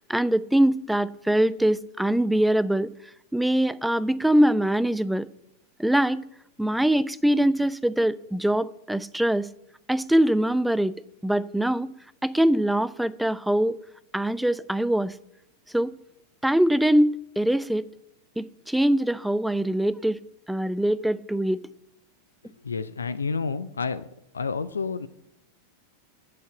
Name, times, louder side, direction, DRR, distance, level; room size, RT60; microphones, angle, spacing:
voice 1, 0.1-2.9 3.3-5.3 5.8-6.2 6.6-9.5 9.9-10.9 11.2-11.9 12.2-13.8 14.1-15.1 15.7-15.9 16.4-17.9 18.4-20.2 20.5-21.6, right 1 dB, 5° right, 0.4 m, -23 dB
voice 2, 22.4-24.0 24.3-25.1, left 5 dB, 75° left, 0.4 m, -30 dB
8.1 x 7.6 x 7.3 m
figure-of-eight pair, 90°, 0 cm